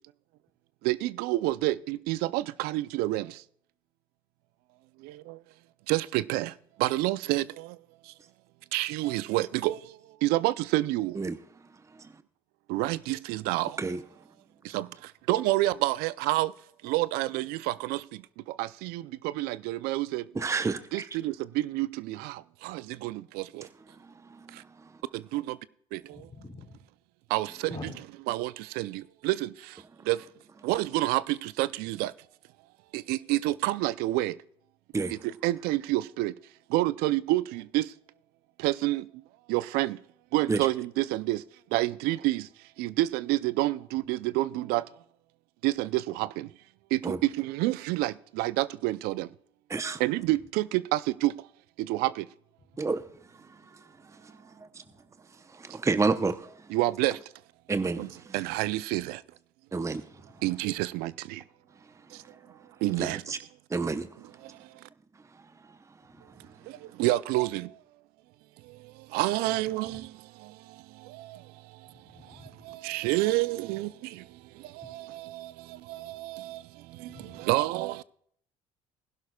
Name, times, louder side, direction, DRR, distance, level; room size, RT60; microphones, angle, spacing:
voice 1, 0.8-3.4 5.0-5.4 5.9-6.5 6.8-7.8 8.7-9.8 10.2-11.2 12.7-13.8 14.6-14.9 15.3-16.5 16.8-18.0 18.6-20.2 20.9-23.7 25.1-25.6 25.9-26.2 27.3-27.8 28.3-29.7 30.1-30.2 30.6-32.1 32.9-34.3 35.1-36.3 36.7-37.9 38.6-39.1 39.5-40.0 40.3-41.4 41.7-42.5 42.8-44.8 45.6-46.5 46.9-49.3 50.0-51.3 51.8-52.3 56.7-57.2 58.0-58.1 58.3-59.2 60.4-61.4 62.8-63.2 66.7-67.7 69.1-70.1 70.4-70.5 71.0-71.4 72.6-74.2 74.7-76.6 77.0-78.0, right 17 dB, 75° right, 0.5 m, -28 dB
voice 2, 20.3-21.1 23.6-25.0 30.0-30.1 34.9-35.2 40.5-40.7 47.0-47.2 49.7-50.0 52.8-54.4 55.3-56.7 57.7-58.4 59.7-60.2 61.8-62.4 63.0-63.4 63.7-64.1 65.3-66.4, right 4 dB, 20° right, 0.7 m, -32 dB
voice 3, 26.1-26.7 27.7-28.0 69.4-69.6 69.9-70.0 71.9-72.5 74.8-74.9 77.1-77.5, left 3 dB, 30° left, 4.1 m, -45 dB
20.0 x 11.5 x 2.3 m
supercardioid pair, 70°, 16 cm